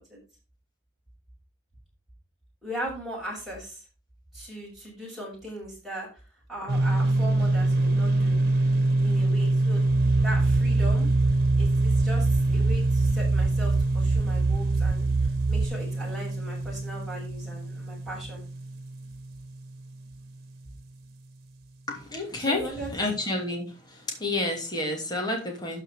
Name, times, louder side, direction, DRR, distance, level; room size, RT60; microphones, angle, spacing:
voice 1, 2.6-3.8 4.3-6.1 6.5-8.4 9.0-9.8 10.2-11.1 11.6-18.4 22.5-22.9, equal, ahead, -7 dB, 6.3 m, -38 dB
sound 1, 6.7-20.2, right 2 dB, 55° right, 1.7 m, -25 dB
sound 2, 9.9-15.7, right 4 dB, 40° right, 0.4 m, -26 dB
voice 2, 21.9-25.8, left 2 dB, 20° left, 0 dB, 2.8 m, -30 dB
12.0 x 5.0 x 4.9 m, 0.33 s
head